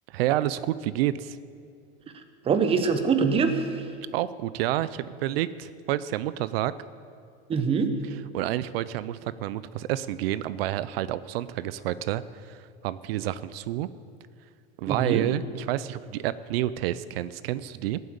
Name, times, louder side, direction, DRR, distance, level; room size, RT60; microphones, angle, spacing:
voice 1, 0.1-1.4 4.1-6.7 8.3-13.9 14.8-18.0, right 13 dB, 80° right, 16 dB, 0.6 m, -29 dB
voice 2, 2.4-3.9 7.5-7.9 14.9-15.3, right 5 dB, 20° right, 8 dB, 0.9 m, -24 dB
14.5 x 7.9 x 8.8 m, 2.3 s
supercardioid pair, 160°, 29 cm